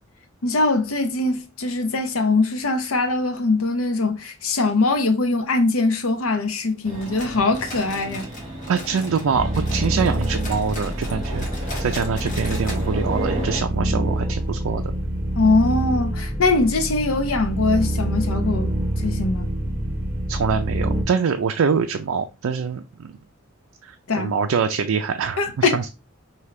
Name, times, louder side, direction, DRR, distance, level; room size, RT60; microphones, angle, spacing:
voice 1, 0.4-8.3 15.3-18.8 19.0-19.5 24.1-24.3 25.4-25.8, left 3 dB, 85° left, 0.8 m, -22 dB
sound 1, 6.8-13.6, right 1 dB, 35° right, 1.9 m, -34 dB
sound 2, 7.0-9.3 9.5-12.9 13.1-13.2 13.6-13.7 14.3-14.4, left 2 dB, 40° left, 1.4 m, -39 dB
voice 2, 8.7-11.5 11.8-14.8 20.3-23.2 23.8-25.9, right 6 dB, 80° right, 0.4 m, -24 dB
sound 3, 9.3-21.0, right 1 dB, 10° right, 1.4 m, -26 dB
5.1 x 2.8 x 3.2 m
head